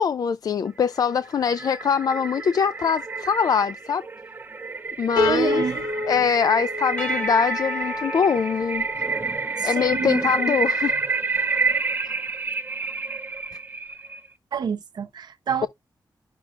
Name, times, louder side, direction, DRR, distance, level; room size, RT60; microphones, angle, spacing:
voice 1, 0.0-4.1 5.0-5.6 6.1-8.8 9.6-10.9 12.1-12.2, left 6 dB, 60° left, 0.4 m, -23 dB
sound 1, 0.9-14.3, right 4 dB, 25° right, 0.6 m, -29 dB
Piano, 5.2-8.4, left 2 dB, 85° left, 2.6 m, -28 dB
voice 2, 5.2-5.8 9.6-10.3 14.5-15.7, right 6 dB, 75° right, 0.8 m, -28 dB
Percussion / Church bell, 7.0-10.9, equal, 15° left, 1.2 m, -34 dB
11.5 x 6.0 x 2.4 m
wide cardioid pair, 150°, 7 cm